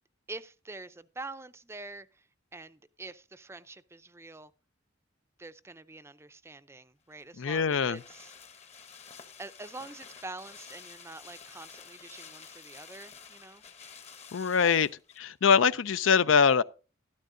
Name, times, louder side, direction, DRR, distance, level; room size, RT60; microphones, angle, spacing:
voice 1, 0.3-4.5 5.4-8.3 9.4-13.6 14.6-14.7, right 2 dB, 15° right, 0.5 m, -46 dB
sound 1, 7.1-15.3 15.6-15.7, left 6 dB, 35° left, 1.0 m, -50 dB
voice 2, 7.4-8.0 14.3-14.9 15.2-16.6, left 6 dB, 80° left, 0.5 m, -23 dB
13.0 x 13.0 x 2.6 m
head